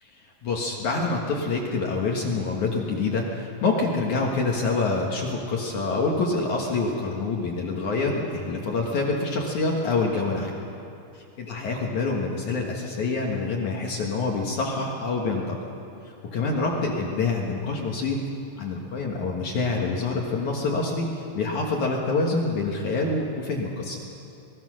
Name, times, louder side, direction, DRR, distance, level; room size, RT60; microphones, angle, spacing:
voice 1, 0.0-10.5 11.1-15.6 16.1-18.2 18.6-21.1 21.3-24.0, left 3 dB, 65° left, -1 dB, 1.9 m, -26 dB
25.5 x 19.5 x 6.3 m, 2.7 s
omnidirectional pair, 5.8 m